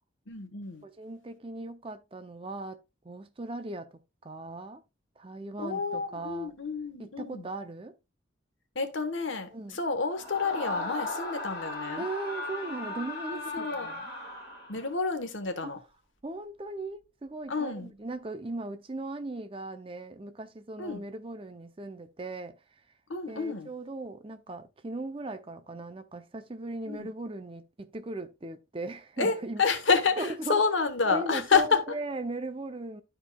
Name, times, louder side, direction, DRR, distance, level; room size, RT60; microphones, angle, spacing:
voice 1, 0.3-0.8 5.6-7.5 8.7-12.1 13.3-13.9 14.7-15.8 17.5-17.9 20.8-21.0 23.1-23.7 26.9-27.1 29.2-32.0, left 5 dB, 80° left, 1.2 m, -29 dB
voice 2, 0.8-2.8 3.0-4.8 5.2-6.5 7.0-8.0 9.5-9.8 12.0-14.1 15.6-15.7 16.2-22.6 23.3-29.6 30.2-30.6 31.1-33.0, right 2 dB, 30° right, 0.5 m, -38 dB
Screaming, 10.1-15.0, left 2 dB, 20° left, 2.5 m, -37 dB
12.5 x 4.5 x 2.3 m
head